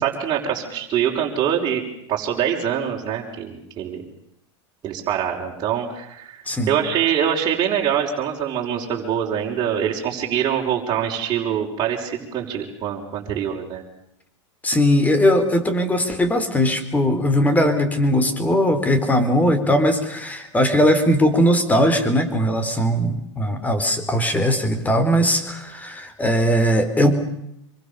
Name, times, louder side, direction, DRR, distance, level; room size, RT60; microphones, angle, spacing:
voice 1, 0.0-1.8 2.1-4.0 4.8-6.4 6.7-13.8, right 9 dB, 30° right, -3 dB, 5.5 m, -24 dB
voice 2, 14.6-27.1, equal, 10° left, 10 dB, 4.0 m, -19 dB
26.5 x 24.5 x 7.0 m, 0.81 s
supercardioid pair, 130°, 15 cm